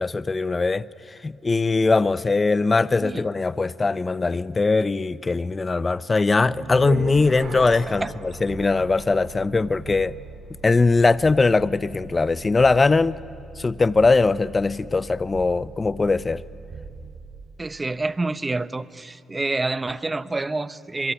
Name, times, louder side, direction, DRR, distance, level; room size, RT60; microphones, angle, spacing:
voice 1, 0.0-10.2 10.6-13.2 13.6-16.4, left 3 dB, 25° left, 18 dB, 0.7 m, -21 dB
sound 1, 6.4-17.6, right 3 dB, 55° right, 4.9 m, -38 dB
Chink clink, 7.6-9.0, left 7 dB, 70° left, 3.5 m, -53 dB
voice 2, 17.6-21.1, right 2 dB, 20° right, 15 dB, 0.8 m, -27 dB
25.0 x 22.5 x 10.0 m, 2.7 s
cardioid pair, 90°, 0 cm